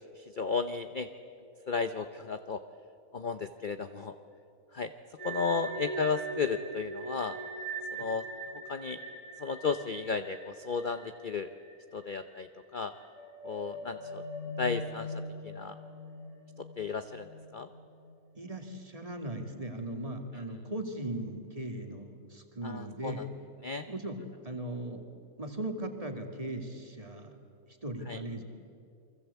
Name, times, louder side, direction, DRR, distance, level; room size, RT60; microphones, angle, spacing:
voice 1, 0.2-1.1 1.7-2.6 3.1-4.1 4.7-4.9 5.2-7.4 7.9-8.2 8.7-9.0 9.4-11.5 11.9-12.5 12.7-12.9 13.4-14.2 14.6-15.1 15.4-15.7 16.8-17.3 17.5-17.7 22.6-23.1 23.6-23.9 28.1-28.2, left 5 dB, 40° left, 9 dB, 0.8 m, -33 dB
sound 1, 5.2-12.0 12.3-12.4 13.0-18.3, right 1 dB, 60° left, 6.5 m, -41 dB
voice 2, 18.4-23.3 23.9-25.0 25.4-27.4 27.8-28.4, right 1 dB, 25° right, 4 dB, 2.4 m, -38 dB
29.5 x 23.5 x 8.3 m, 2.5 s
omnidirectional pair, 1.6 m